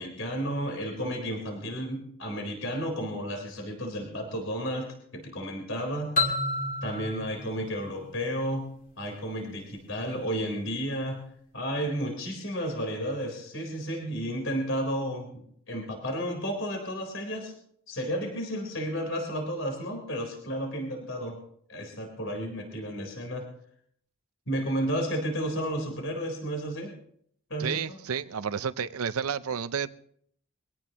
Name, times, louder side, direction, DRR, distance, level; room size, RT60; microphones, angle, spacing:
voice 1, 0.0-6.2 6.8-8.7 9.0-11.2 11.5-17.5 17.9-21.4 21.7-23.4 24.5-26.9 27.5-28.0, equal, 60° left, 2 dB, 4.0 m, -32 dB
sound 1, 6.2-8.9, left 2 dB, 40° left, 2.4 m, -31 dB
voice 2, 27.6-29.9, right 7 dB, 80° right, 14 dB, 0.6 m, -31 dB
23.5 x 17.5 x 3.0 m, 0.66 s
head